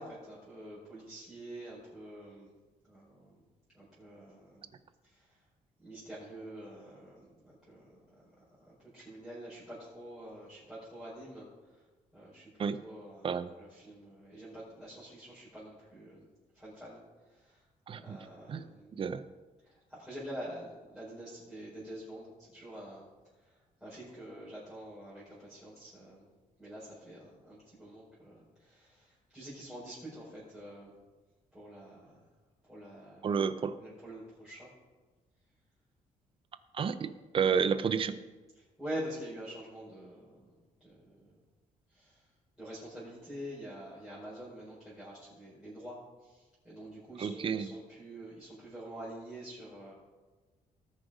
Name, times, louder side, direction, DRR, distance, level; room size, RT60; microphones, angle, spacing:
voice 1, 0.0-2.5 2.8-3.4 3.7-4.7 5.1-5.3 5.8-8.2 8.6-11.5 12.1-12.4 12.8-16.3 16.5-17.0 17.3-17.6 18.0-18.9 19.6-23.1 23.8-26.3 26.6-30.9 31.5-32.2 32.6-33.4 33.8-34.7 38.6-40.5 40.8-41.3 41.9-42.2 42.6-49.9, right 1 dB, ahead, -11 dB, 4.8 m, -46 dB
voice 2, 17.9-18.2 18.5-18.6 18.9-19.2 33.2-33.8 36.7-38.2 47.2-47.7, right 6 dB, 40° right, 13 dB, 0.7 m, -30 dB
18.5 x 6.5 x 5.0 m, 1.3 s
cardioid pair, 150°, 14 cm